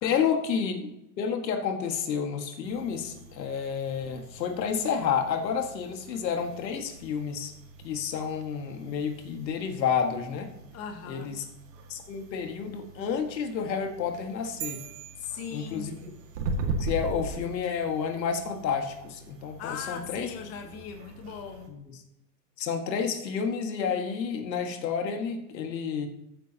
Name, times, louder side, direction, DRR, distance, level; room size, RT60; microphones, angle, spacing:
voice 1, 0.0-0.9 1.2-7.5 7.8-10.5 11.1-11.4 11.9-14.8 15.5-16.0 16.8-20.3 21.7-21.8 22.6-26.1, left 6 dB, 85° left, 4 dB, 2.0 m, -30 dB
sound 1, 2.6-21.7, right 2 dB, 70° right, 2.2 m, -41 dB
voice 2, 10.7-11.4 15.2-15.9 19.6-21.7, left 7 dB, 30° left, 4 dB, 1.3 m, -39 dB
sound 2, 14.6-16.3, right 15 dB, 30° right, 0.6 m, -42 dB
14.5 x 7.8 x 2.9 m, 0.85 s
supercardioid pair, 145°, 50 cm